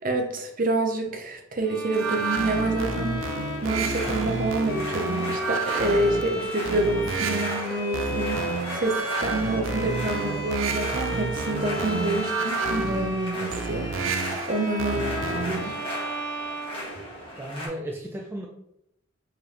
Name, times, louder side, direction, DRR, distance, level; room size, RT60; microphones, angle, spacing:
voice 1, 0.0-3.2 3.6-15.8, right 2 dB, 45° right, 3 dB, 0.7 m, -28 dB
Bowed string instrument, 1.6-17.5, equal, 65° left, 1.0 m, -34 dB
sound 1, 1.9-15.7, right 5 dB, 85° right, 0.5 m, -30 dB
sound 2, 3.6-17.7, equal, 30° left, 1.3 m, -37 dB
voice 2, 14.9-15.7 17.4-18.5, right 1 dB, 10° right, 0 dB, 0.3 m, -36 dB
4.7 x 3.3 x 3.2 m, 0.80 s
head